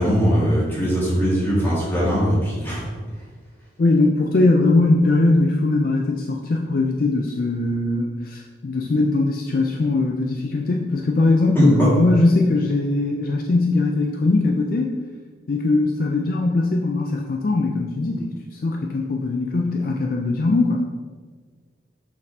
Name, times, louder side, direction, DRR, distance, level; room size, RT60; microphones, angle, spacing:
voice 1, 0.0-2.8 11.5-11.9, equal, 10° left, -8 dB, 1.7 m, -20 dB
voice 2, 3.8-14.9 15.5-20.8, left 2 dB, 50° left, 1 dB, 0.4 m, -20 dB
6.6 x 5.3 x 2.7 m, 1.5 s
head